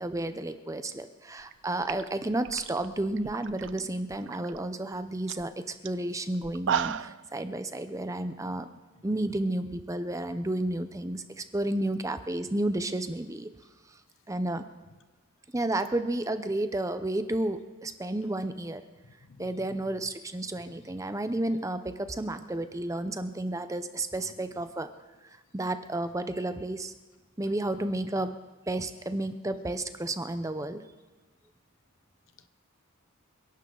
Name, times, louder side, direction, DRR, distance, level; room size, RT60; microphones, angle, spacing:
voice 1, 0.0-8.7 9.0-13.5 14.3-14.7 15.5-18.8 19.4-24.9 25.5-26.9 27.4-28.4 28.7-30.8, right 1 dB, 15° right, 0.6 m, -31 dB
sound 1, 1.4-1.5 1.8-3.8 4.1-4.6 4.9-5.0 5.3-5.5 5.9-6.0 6.4-7.2, right 8 dB, 55° right, 0.4 m, -33 dB
voice 2, 8.3-9.3 14.9-15.0 19.0-20.1 20.5-21.0 21.3-21.4 24.2-24.6 27.4-27.5 32.4-32.5, left 3 dB, 60° left, 0.8 m, -56 dB
27.5 x 11.5 x 3.9 m
head